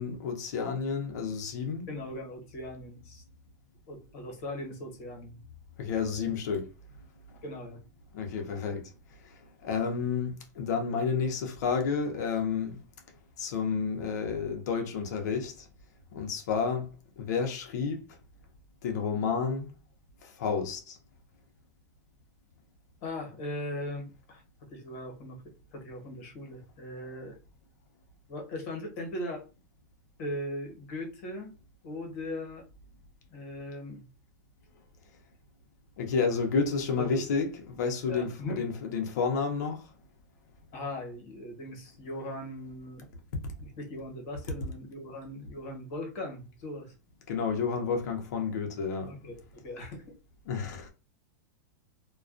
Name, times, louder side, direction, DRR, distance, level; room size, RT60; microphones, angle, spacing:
voice 1, 0.0-1.9 5.8-6.7 8.1-8.9 9.3-12.8 13.4-15.7 16.1-18.0 18.8-19.7 20.2-21.0 36.0-39.9 47.3-49.1 50.5-50.9, left 5 dB, 70° left, 0.7 m, -30 dB
voice 2, 1.9-3.2 3.9-5.4 7.4-7.8 23.0-24.4 24.7-25.4 25.7-27.4 28.3-29.4 30.2-31.5 31.8-32.6 33.3-34.0 37.0-37.3 38.1-38.6 40.7-43.1 43.6-46.9 49.1-50.0, left 1 dB, 55° left, 1.1 m, -39 dB
2.3 x 2.2 x 2.4 m
supercardioid pair, 145°, 9 cm